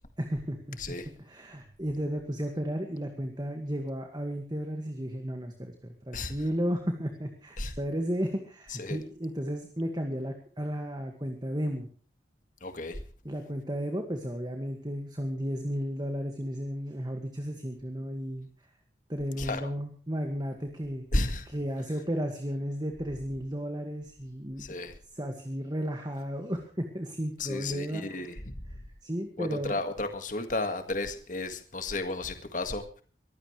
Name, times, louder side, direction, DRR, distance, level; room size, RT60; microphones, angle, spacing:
voice 1, 0.2-11.9 13.2-18.5 19.1-21.0 21.5-24.8 25.1-28.3 28.7-29.8, equal, 25° right, 4 dB, 2.0 m, -34 dB
voice 2, 12.6-13.0 19.4-19.6 21.1-21.5 24.6-24.9 27.4-28.5 29.4-32.8, left 2 dB, 45° left, 7 dB, 1.9 m, -33 dB
22.5 x 16.0 x 3.3 m, 0.41 s
head